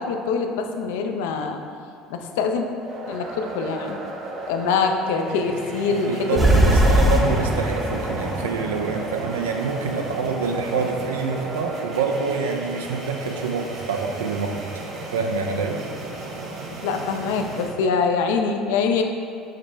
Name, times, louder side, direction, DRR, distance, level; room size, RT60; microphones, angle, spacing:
voice 1, 0.0-1.6 2.1-2.7 3.1-4.0 4.5-6.6 16.8-19.0, left 5 dB, 75° left, 5 dB, 0.3 m, -24 dB
sound 1, 2.8-17.7, right 2 dB, 55° right, 0.7 m, -34 dB
voice 2, 5.9-14.7 15.1-15.8, right 5 dB, 85° right, 3 dB, 0.4 m, -26 dB
sound 2, 6.4-9.8, equal, 15° right, 0.6 m, -20 dB
4.9 x 2.1 x 4.4 m, 2.4 s
hypercardioid pair, 70°, 0 cm